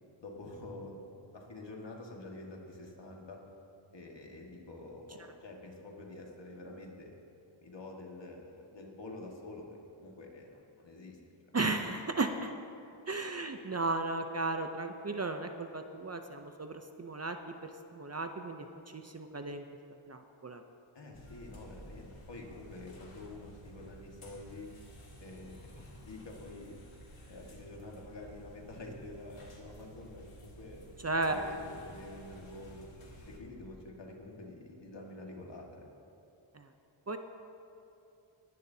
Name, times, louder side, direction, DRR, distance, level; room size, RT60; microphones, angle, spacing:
voice 1, 0.2-1.0 1.3-3.4 3.9-7.2 7.6-11.2 20.9-24.7 25.2-26.8 27.3-30.8 31.2-32.9 33.3-35.9, left 2 dB, 60° left, 0 dB, 1.8 m, -47 dB
voice 2, 11.5-12.5 13.1-18.7 18.9-19.6 20.1-20.6 31.0-31.4 36.5-36.7 37.1-37.2, right 3 dB, 30° right, 6 dB, 0.6 m, -35 dB
sound 1, 21.1-33.4, equal, 80° left, 2.3 m, -53 dB
19.5 x 11.0 x 2.8 m, 2.8 s
wide cardioid pair, 85°, 49 cm